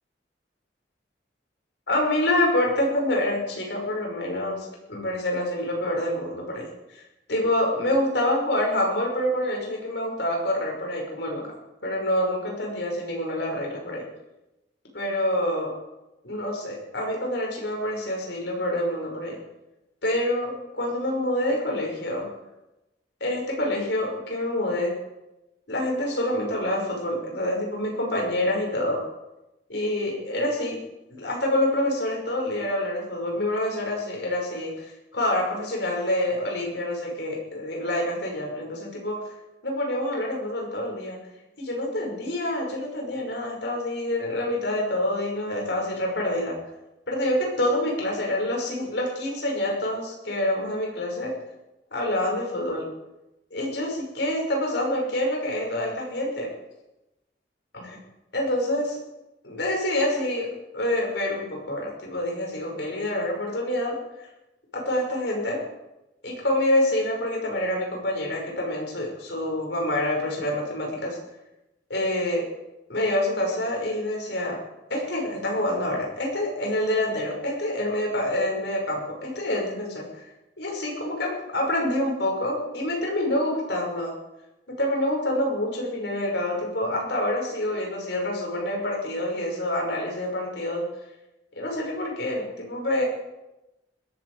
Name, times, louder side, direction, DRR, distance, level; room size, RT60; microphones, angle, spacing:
voice 1, 1.9-7.0 7.3-11.5 11.8-14.1 14.9-15.8 16.2-19.4 20.0-22.3 23.2-25.0 25.7-29.0 29.7-30.8 31.1-39.3 39.6-41.2 41.6-46.6 47.1-51.4 51.9-52.9 53.5-56.5 57.7-58.0 58.3-59.0 59.4-64.3 64.7-65.6 66.2-71.2 71.9-72.5 72.9-74.6 74.9-80.3 80.6-84.1 84.7-90.9 91.6-93.1, left 1 dB, 70° left, -1 dB, 5.7 m, -27 dB
20.5 x 14.5 x 4.9 m, 0.97 s
head